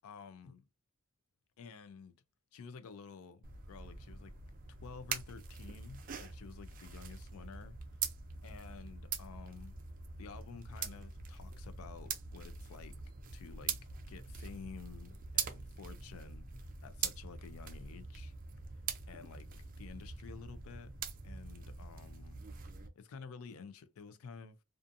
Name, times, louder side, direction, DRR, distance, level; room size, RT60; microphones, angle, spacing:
voice 1, 0.0-0.7 1.6-2.1 2.5-4.3 4.7-8.0 8.4-9.8 10.2-13.0 13.3-13.8 14.1-18.3 19.1-19.5 19.8-20.9 21.2-22.4 23.0-24.6, left 5 dB, 75° left, 0.4 m, -51 dB
sound 1, 3.4-22.9, right 6 dB, 40° right, 0.4 m, -43 dB
2.5 x 2.4 x 2.4 m
head